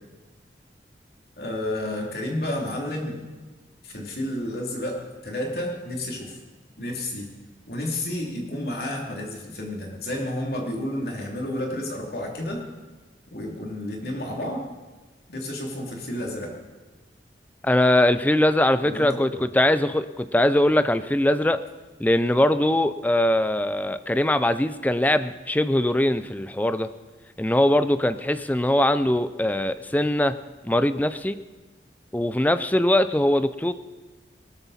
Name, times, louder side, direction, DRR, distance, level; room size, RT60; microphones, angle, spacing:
voice 1, 1.4-3.2 3.8-6.4 6.8-7.3 7.7-12.6 13.3-14.6 15.3-16.5 18.8-19.4, left 1 dB, 60° left, 0 dB, 3.0 m, -31 dB
voice 2, 17.6-21.6 22.0-26.9 27.4-30.4 30.6-31.4 32.1-33.7, left 1 dB, 10° left, 12 dB, 0.4 m, -21 dB
19.0 x 13.0 x 4.2 m, 1.2 s
head